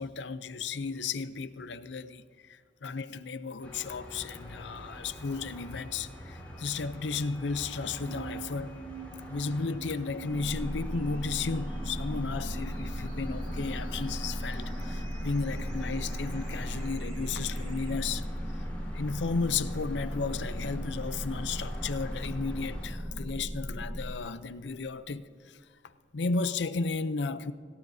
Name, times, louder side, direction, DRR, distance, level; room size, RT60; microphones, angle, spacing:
voice 1, 0.0-2.2 2.5-8.8 9.3-18.3 18.9-25.6 26.1-27.5, left 4 dB, 90° left, 0.6 m, -34 dB
sound 1, 3.6-22.9, equal, 10° left, 4.1 m, -45 dB
sound 2, 7.9-17.9, right 3 dB, 55° right, 4.1 m, -46 dB
sound 3, 10.3-24.1, equal, 10° right, 1.6 m, -36 dB
25.0 x 18.0 x 2.7 m
head